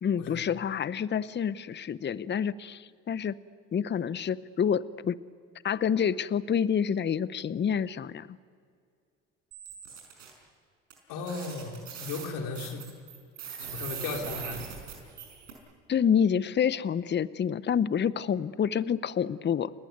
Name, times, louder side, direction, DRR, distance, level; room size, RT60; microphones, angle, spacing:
voice 1, 0.0-3.3 3.7-5.2 5.6-8.4 15.9-19.7, left 8 dB, 30° left, 17 dB, 0.9 m, -28 dB
sound 1, 9.5-10.3 10.9-11.0 11.2-15.5, right 7 dB, 90° right, 5.6 m, -41 dB
voice 2, 11.1-12.9 13.6-14.6, left 4 dB, 65° left, 2 dB, 4.3 m, -36 dB
29.5 x 19.0 x 9.4 m, 2.2 s
hypercardioid pair, 65°, 37 cm